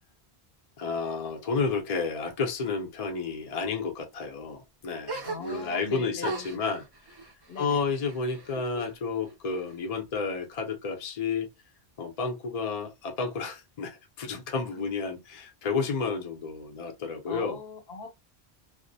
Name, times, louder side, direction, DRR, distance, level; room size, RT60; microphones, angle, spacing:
voice 1, 0.8-6.8 7.6-11.5 12.0-17.6, left 4 dB, 45° left, 0.6 m, -31 dB
sound 1, 5.1-5.9 6.2-8.9 9.2-10.1, right 2 dB, 35° right, 0.4 m, -40 dB
voice 2, 5.2-6.6 7.5-7.9 14.7-14.8 17.2-18.1, left 4 dB, 75° left, 0.9 m, -41 dB
2.4 x 2.1 x 2.6 m
omnidirectional pair, 1.1 m